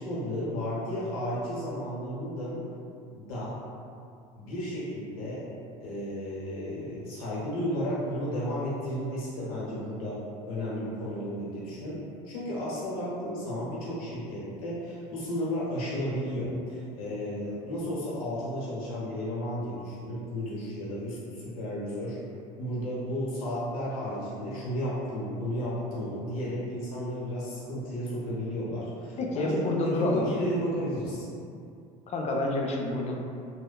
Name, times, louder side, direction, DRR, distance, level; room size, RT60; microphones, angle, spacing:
voice 1, 0.0-2.6 3.1-3.5 4.4-5.5 5.8-10.2 10.5-22.2 22.6-31.3, equal, 90° left, -7 dB, 0.8 m, -33 dB
voice 2, 29.2-30.3 32.1-33.2, left 2 dB, 40° left, 0 dB, 0.4 m, -28 dB
3.1 x 2.0 x 2.3 m, 2.5 s
supercardioid pair, 80°, 18 cm